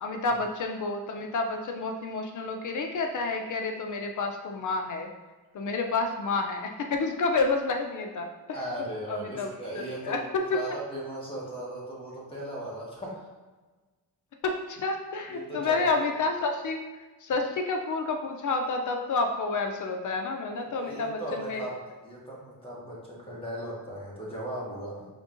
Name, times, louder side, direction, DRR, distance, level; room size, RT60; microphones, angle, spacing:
voice 1, 0.0-5.1 5.5-8.6 9.1-10.2 10.5-10.6 14.4-21.6, left 3 dB, 55° left, 4 dB, 0.5 m, -30 dB
voice 2, 8.5-10.2 10.5-13.3 15.3-16.1 20.5-21.8 22.0-25.1, right 1 dB, 15° left, -5 dB, 1.3 m, -37 dB
5.2 x 3.5 x 2.5 m, 1.3 s
cardioid pair, 125°, 38 cm